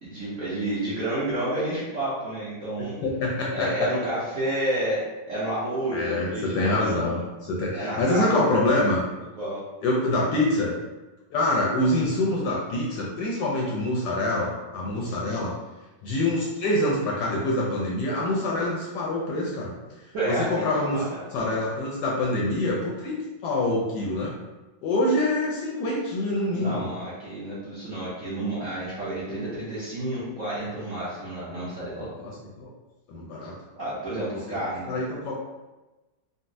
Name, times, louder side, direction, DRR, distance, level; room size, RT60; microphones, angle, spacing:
voice 1, 0.0-2.9 3.5-5.0 5.3-7.2 7.7-8.4 9.4-9.6 20.1-20.7 20.9-21.2 26.5-32.1 33.8-34.9, right 1 dB, 60° right, -9 dB, 0.8 m, -30 dB
voice 2, 3.0-3.9 5.9-9.0 9.8-10.7 11.3-15.5 16.0-19.8 20.3-21.0 21.3-24.3 24.8-26.9 32.2-32.7 33.1-33.5 34.5-34.6 34.9-35.3, left 1 dB, 70° left, -4 dB, 1.0 m, -25 dB
3.9 x 2.0 x 2.5 m, 1.1 s
omnidirectional pair, 2.1 m